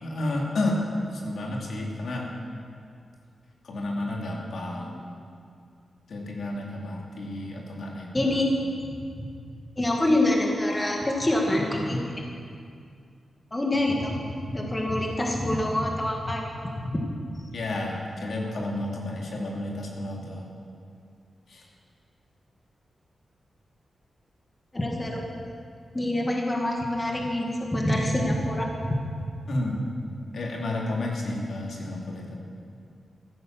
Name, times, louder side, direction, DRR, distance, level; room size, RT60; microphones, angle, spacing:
voice 1, 0.0-2.3 3.6-5.1 6.1-8.4 17.5-20.5 21.5-21.6 29.5-29.8 30.3-32.3, left 1 dB, 70° left, -2 dB, 2.7 m, -31 dB
voice 2, 8.1-8.5 8.8-8.9 9.8-12.2 13.5-14.2 14.5-16.4 16.8-17.0 24.7-25.2 25.9-29.0, left 1 dB, 20° left, 0 dB, 1.9 m, -26 dB
14.5 x 11.0 x 7.6 m, 2.3 s
wide cardioid pair, 115°, 0 cm